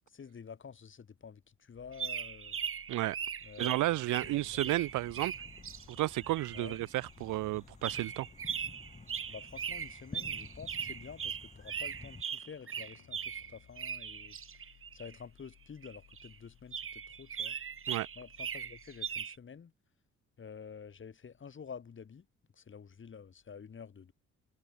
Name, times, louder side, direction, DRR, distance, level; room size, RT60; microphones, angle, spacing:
voice 1, 0.1-2.6 3.4-4.6 6.5-6.8 9.3-14.4 14.9-17.6 18.2-19.7 20.4-22.3 22.6-24.1, left 6 dB, 40° left, 3.0 m, -49 dB
sound 1, 1.7-19.3, left 13 dB, 80° left, 8.0 m, -64 dB
sound 2, 1.9-7.1 7.8-15.2 15.8-16.3 16.7-19.4, right 7 dB, 45° right, 2.4 m, -40 dB
voice 2, 3.6-5.3 5.9-8.3 17.9-18.1, right 17 dB, 80° right, 0.6 m, -32 dB
sound 3, 4.2-12.2, left 3 dB, 20° left, 3.2 m, -53 dB
cardioid pair, 90°, 30 cm